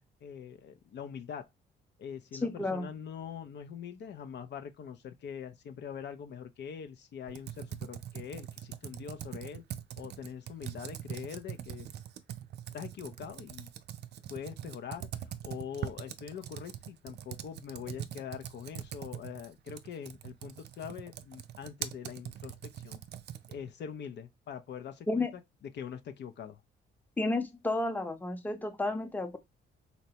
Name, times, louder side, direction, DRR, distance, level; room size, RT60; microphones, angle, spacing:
voice 1, 0.0-1.5 2.0-9.6 10.0-11.9 12.7-13.7 14.3-15.1 15.4-23.0 23.5-25.3 25.6-26.6, left 8 dB, 60° left, 0.5 m, -43 dB
voice 2, 2.4-2.9 25.1-25.3 27.2-29.4, left 2 dB, 10° left, 0.7 m, -31 dB
Computer keyboard, 7.3-23.7, right 10 dB, 60° right, 0.4 m, -43 dB
4.0 x 2.2 x 2.8 m
cardioid pair, 90°, 20 cm